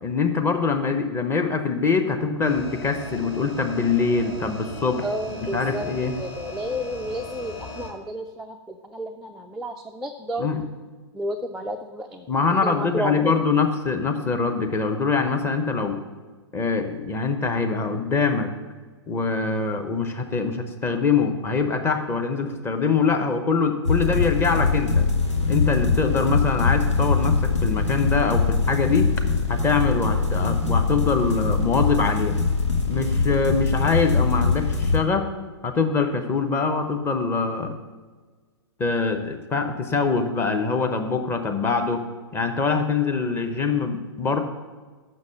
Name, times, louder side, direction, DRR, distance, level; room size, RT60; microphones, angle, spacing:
voice 1, 0.0-6.1 10.4-10.6 12.3-16.0 16.5-18.5 19.1-25.1 25.5-29.1 29.5-32.4 32.9-35.3 35.6-37.7 38.8-42.0 42.3-44.4, left 4 dB, 15° left, 5 dB, 0.9 m, -24 dB
sound 1, 2.4-7.9, left 1 dB, 35° left, 2.4 m, -38 dB
voice 2, 5.0-5.9 6.2-8.6 8.8-10.5 11.1-12.3 12.6-13.4 26.1-26.3, equal, 5° right, 2 dB, 0.3 m, -31 dB
sound 2, 23.8-35.0, left 4 dB, 90° left, 1.5 m, -22 dB
6.4 x 6.3 x 7.3 m, 1.4 s
figure-of-eight pair, 120°, 15 cm